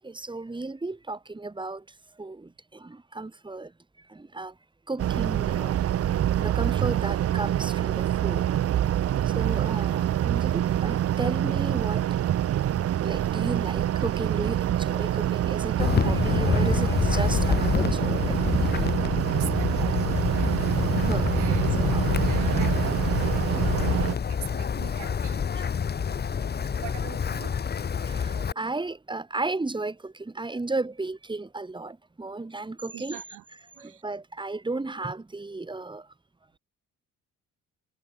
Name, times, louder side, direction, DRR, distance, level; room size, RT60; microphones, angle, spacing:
voice 1, 0.0-1.8 2.2-3.7 4.1-4.5 4.9-8.4 9.2-12.1 13.0-19.1 21.0-22.3 25.5-25.7 28.0-33.2 33.8-36.1, right 3 dB, 15° right, 2.7 m, -34 dB
sound 1, 5.0-24.1, right 11 dB, 50° right, 0.7 m, -26 dB
Wind, 15.8-28.5, left 7 dB, 35° left, 0.9 m, -27 dB
voice 2, 19.4-20.9 21.3-23.5 24.3-25.4 26.5-27.6 32.9-33.4 33.8-34.0, right 16 dB, 90° right, 2.8 m, -43 dB
cardioid pair, 90°, 30 cm